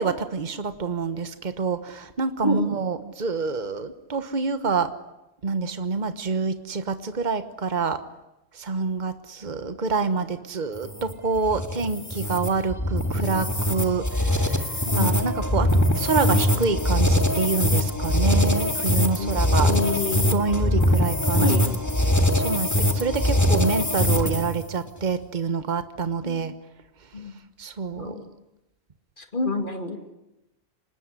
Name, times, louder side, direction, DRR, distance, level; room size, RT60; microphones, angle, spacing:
voice 1, 0.0-4.9 5.4-8.0 8.6-19.8 20.3-21.5 22.1-26.5 27.6-28.2, right 4 dB, 45° right, 10 dB, 1.4 m, -27 dB
sound 1, 10.7-24.6, left 1 dB, 15° left, 2.1 m, -22 dB
voice 2, 19.2-20.3 21.4-21.7 26.2-26.4 27.1-27.3 28.0-28.2 29.2-30.0, left 2 dB, 55° left, 6 dB, 2.8 m, -28 dB
25.5 x 20.5 x 9.9 m, 0.94 s
omnidirectional pair, 1.1 m